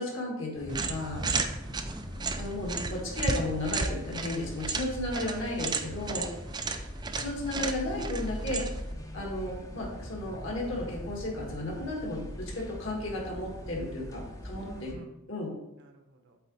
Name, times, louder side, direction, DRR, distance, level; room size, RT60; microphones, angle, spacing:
voice 1, 0.0-1.2 2.4-6.3 7.1-8.7 9.1-14.9 15.3-15.5, left 1 dB, 60° left, -2 dB, 2.1 m, -34 dB
sound 1, 0.5-14.9, equal, 15° left, 0.7 m, -41 dB
sound 2, 0.7-8.9, right 4 dB, 20° right, 0.4 m, -34 dB
voice 2, 1.4-1.8 6.3-6.7 14.6-15.2 15.8-16.4, right 1 dB, 55° right, 5 dB, 0.9 m, -52 dB
8.0 x 3.9 x 4.1 m, 0.92 s
head